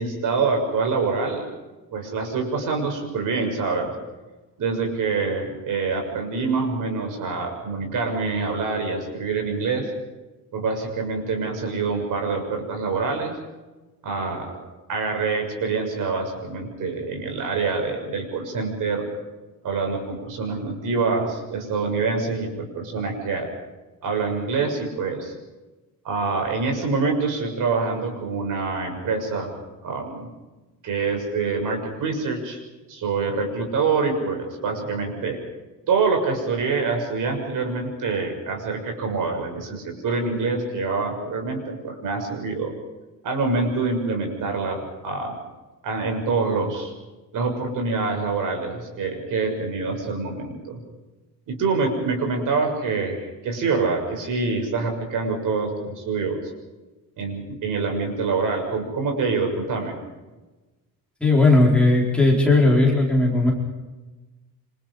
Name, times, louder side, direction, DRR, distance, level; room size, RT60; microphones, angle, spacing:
voice 1, 0.0-1.4 1.9-3.9 4.6-9.9 10.5-13.4 14.0-14.6 14.9-19.1 19.6-22.5 22.7-23.5 24.0-25.3 26.0-29.6 29.8-30.3 30.8-32.6 32.9-35.4 35.9-42.7 43.2-45.4 45.8-46.9 47.3-50.8 51.5-56.4 57.2-60.0, right 4 dB, 60° right, 3 dB, 6.8 m, -25 dB
voice 2, 61.2-63.5, left 2 dB, 5° left, -3 dB, 4.6 m, -17 dB
28.0 x 26.5 x 5.0 m, 1.2 s
cardioid pair, 175°, 35 cm